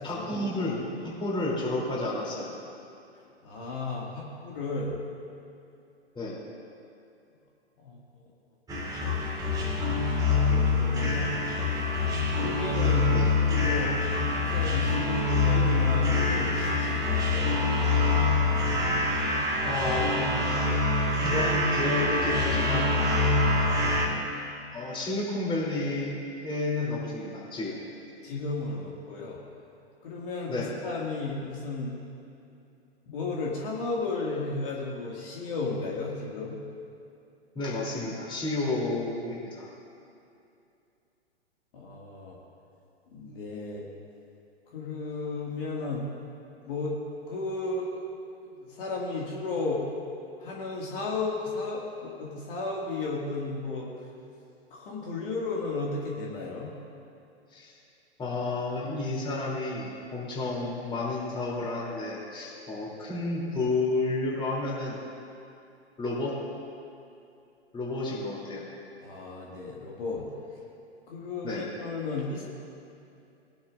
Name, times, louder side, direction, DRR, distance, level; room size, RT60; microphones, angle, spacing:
voice 1, 0.0-2.5 6.1-6.4 13.1-13.3 19.6-20.8 21.2-22.9 24.7-27.8 30.5-30.7 37.5-39.7 57.5-57.7 58.2-65.0 66.0-66.3 67.7-68.7 71.4-71.7, left 2 dB, 15° left, -4 dB, 3.1 m, -31 dB
voice 2, 3.1-5.0 7.8-8.0 10.1-11.7 12.4-13.2 13.5-14.0 14.4-17.6 28.2-29.4 30.0-32.0 33.1-36.6 41.7-42.4 43.1-43.9 44.7-46.1 46.7-47.0 47.3-48.0 48.6-49.8 50.4-53.9 54.7-56.7 69.0-70.3 71.1-72.5, left 3 dB, 55° left, -3 dB, 2.1 m, -34 dB
sound 1, 8.7-24.1, left 3 dB, 10° right, 1.9 m, -25 dB
20.0 x 11.5 x 2.5 m, 2.6 s
figure-of-eight pair, 115°, 32 cm